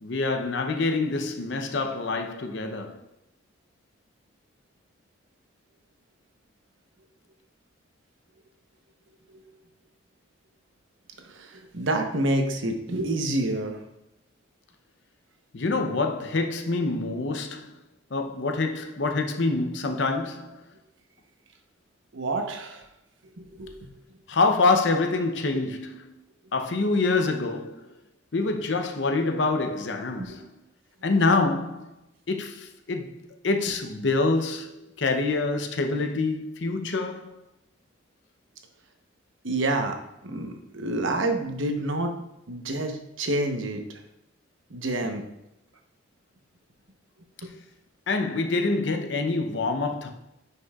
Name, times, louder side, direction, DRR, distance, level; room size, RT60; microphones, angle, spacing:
voice 1, 0.0-3.0 15.5-17.7 18.1-20.6 24.3-26.1 26.5-27.9 28.3-30.4 31.0-31.9 32.3-37.4 48.1-50.1, left 3 dB, 65° left, 0.7 m, -26 dB
voice 2, 11.2-13.8 22.1-22.9 23.4-23.9 30.2-30.4 39.4-42.1 42.5-43.8 44.7-45.3 47.4-47.5, right 2 dB, 80° right, 1.0 m, -28 dB
9.5 x 5.4 x 2.4 m
head